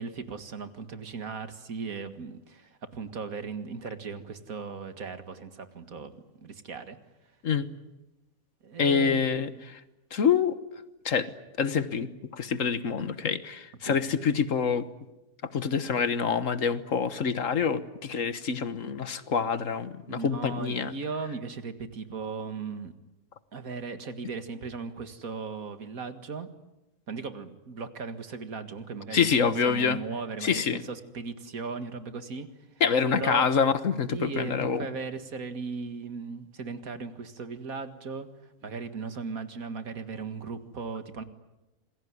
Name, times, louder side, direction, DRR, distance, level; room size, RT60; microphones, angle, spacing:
voice 1, 0.0-6.1 6.4-7.0 8.6-9.7 13.8-14.0 20.1-22.9 23.5-26.5 27.1-29.3 29.6-32.5 33.1-33.5 34.1-38.3 38.6-41.2, right 5 dB, 75° right, 9 dB, 2.3 m, -37 dB
voice 2, 8.8-9.8 10.1-10.6 11.0-11.3 11.6-14.8 15.5-20.9 29.1-30.0 30.4-30.8 32.8-34.9, left 6 dB, 65° left, 13 dB, 1.6 m, -26 dB
27.5 x 21.0 x 9.7 m, 0.98 s
omnidirectional pair, 1.5 m